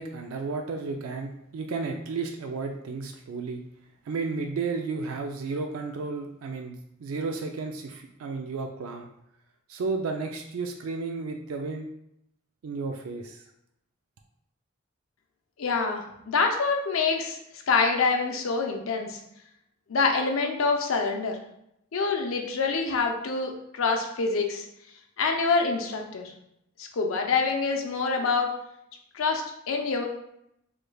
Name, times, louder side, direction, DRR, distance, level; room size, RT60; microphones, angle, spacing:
voice 1, 0.0-3.6 4.1-9.1 9.7-11.9 12.6-13.4, right 4 dB, 85° right, 4 dB, 0.3 m, -33 dB
voice 2, 15.6-17.4 17.7-19.2 19.9-21.4 21.9-24.6 25.2-26.3 26.8-28.5 29.1-30.0, left 4 dB, 75° left, 3 dB, 0.5 m, -26 dB
3.2 x 3.2 x 2.2 m, 0.78 s
head